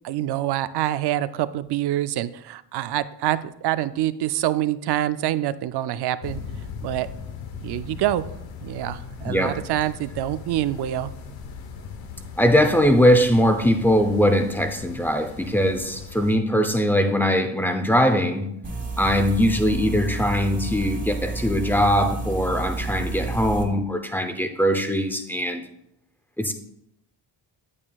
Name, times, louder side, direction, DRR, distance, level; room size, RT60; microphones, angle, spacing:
voice 1, 0.0-6.4 6.8-7.1 7.6-8.3 8.6-11.1, right 13 dB, 65° right, 14 dB, 0.5 m, -26 dB
sound 1, 6.2-16.4, left 6 dB, 90° left, 1.0 m, -39 dB
voice 2, 9.3-9.6 12.4-18.5 19.0-25.6 26.4-26.5, equal, 5° left, 7 dB, 0.6 m, -21 dB
sound 2, 18.6-23.6, right 3 dB, 25° right, 1.6 m, -30 dB
8.6 x 8.6 x 2.3 m, 0.78 s
cardioid pair, 115°, 44 cm